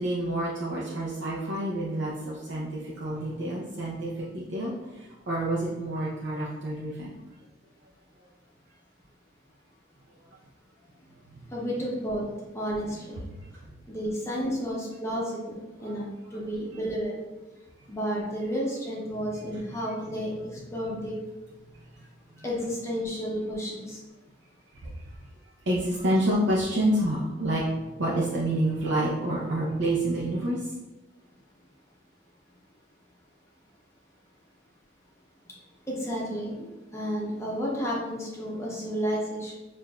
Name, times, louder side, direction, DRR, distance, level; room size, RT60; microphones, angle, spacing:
voice 1, 0.0-7.2 13.2-13.3 14.4-14.5 15.8-16.4 19.5-19.6 22.4-22.5 24.8-25.0 25.7-27.6 27.9-30.7, right 1 dB, 85° right, -5 dB, 0.6 m, -28 dB
voice 2, 11.5-12.2 12.5-13.2 13.9-17.2 17.9-20.3 20.7-21.2 22.4-24.0 35.9-36.7 36.9-39.5, equal, 15° left, -4 dB, 0.6 m, -31 dB
6.3 x 2.5 x 2.3 m, 1.1 s
head